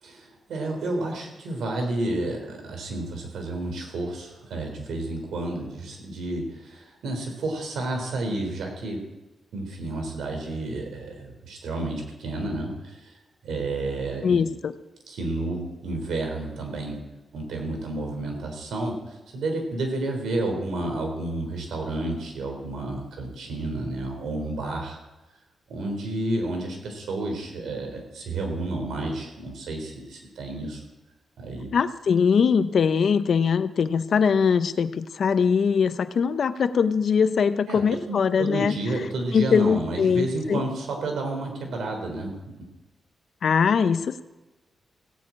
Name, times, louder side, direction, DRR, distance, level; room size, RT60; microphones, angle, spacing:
voice 1, 0.0-9.0 9.5-13.2 13.4-14.4 15.1-17.0 17.3-25.0 25.7-30.8 31.4-31.7 37.7-37.8 38.1-42.3, right 2 dB, 85° right, 3 dB, 3.8 m, -31 dB
voice 2, 14.2-14.7 31.7-38.8 39.3-40.6 43.4-44.2, left 6 dB, 55° left, 13 dB, 0.6 m, -22 dB
16.5 x 6.8 x 8.6 m, 1.1 s
wide cardioid pair, 150°, 0 cm